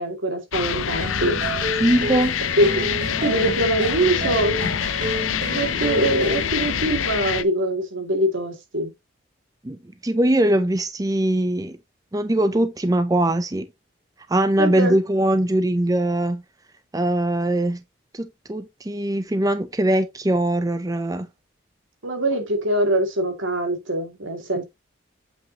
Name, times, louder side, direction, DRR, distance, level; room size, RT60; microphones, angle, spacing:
voice 1, 0.0-1.4 2.6-2.7 3.2-4.6 5.5-8.9 14.6-15.0 22.0-24.6, right 1 dB, 85° right, 2.3 m, -23 dB
sound 1, 0.5-7.4, left 9 dB, 90° left, 0.5 m, -26 dB
sound 2, 1.0-7.0, right 2 dB, 45° right, 1.0 m, -30 dB
voice 2, 1.8-2.5 9.6-11.8 12.1-13.7 14.3-16.4 16.9-17.8 18.1-21.3, right 1 dB, 20° right, 0.5 m, -21 dB
8.1 x 5.4 x 2.9 m
head